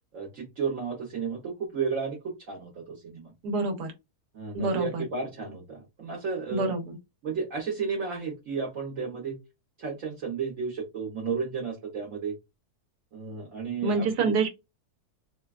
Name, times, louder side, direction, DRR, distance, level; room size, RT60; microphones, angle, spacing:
voice 1, 0.1-3.3 4.3-6.7 7.2-9.4 9.8-12.3 13.1-14.3, right 5 dB, 60° right, 1.2 m, -33 dB
voice 2, 3.4-3.9 4.5-5.0 6.5-7.0 13.8-14.5, right 3 dB, 90° right, 1.3 m, -27 dB
3.3 x 2.1 x 2.4 m
omnidirectional pair, 1.7 m